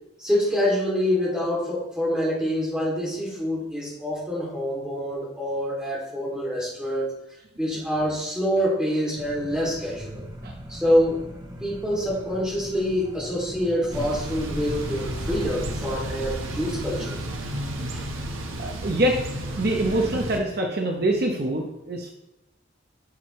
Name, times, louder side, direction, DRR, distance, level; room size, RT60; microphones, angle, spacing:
voice 1, 0.2-7.1 7.6-10.2 10.7-11.2 11.6-17.2 17.9-18.0, equal, 5° right, -6 dB, 2.6 m, -26 dB
sound 1, 9.2-15.5, equal, 20° right, 0.8 m, -41 dB
Thunder / Bicycle, 13.9-20.4, right 1 dB, 80° right, 1.2 m, -32 dB
voice 2, 18.6-19.2 19.6-22.1, right 1 dB, 50° right, 1 dB, 0.9 m, -24 dB
10.5 x 6.4 x 3.2 m, 0.91 s
head